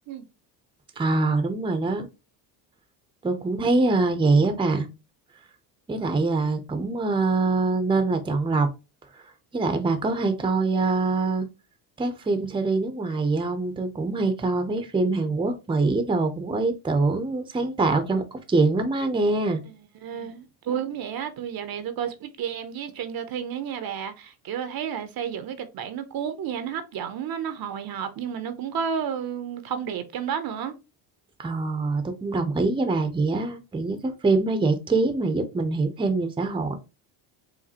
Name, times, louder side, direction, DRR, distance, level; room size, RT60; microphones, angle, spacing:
voice 1, 1.0-2.1 3.2-4.9 5.9-8.7 9.5-11.5 12.0-19.6 31.4-36.7, right 3 dB, 10° right, 0.6 m, -24 dB
voice 2, 20.0-30.7, right 8 dB, 45° right, 0.7 m, -31 dB
4.9 x 2.6 x 2.9 m
supercardioid pair, 85°, 49 cm